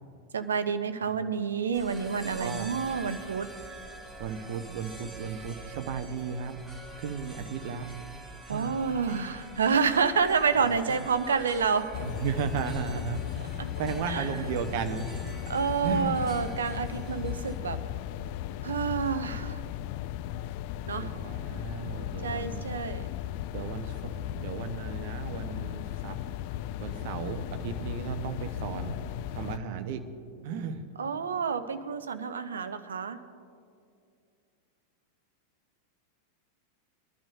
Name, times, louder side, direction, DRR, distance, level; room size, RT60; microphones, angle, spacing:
voice 1, 0.3-3.5 8.5-12.0 13.6-13.7 14.1-14.3 15.5-17.8 18.6-19.6 20.9-21.1 22.2-23.1 31.0-33.2, right 6 dB, 70° right, 11 dB, 0.7 m, -28 dB
sound 1, 1.7-17.5, right 2 dB, 5° left, 3.3 m, -46 dB
voice 2, 2.4-2.7 4.2-6.6 7.0-7.9 8.5-8.8 12.0-15.5 15.8-16.2 21.0-22.8 23.5-26.2 26.8-29.0 29.3-30.0 30.4-30.8, right 6 dB, 50° right, 9 dB, 1.0 m, -35 dB
sound 2, 11.9-29.6, left 12 dB, 45° left, 0.3 m, -36 dB
21.5 x 12.0 x 2.7 m, 2.4 s
figure-of-eight pair, 90°, 0 cm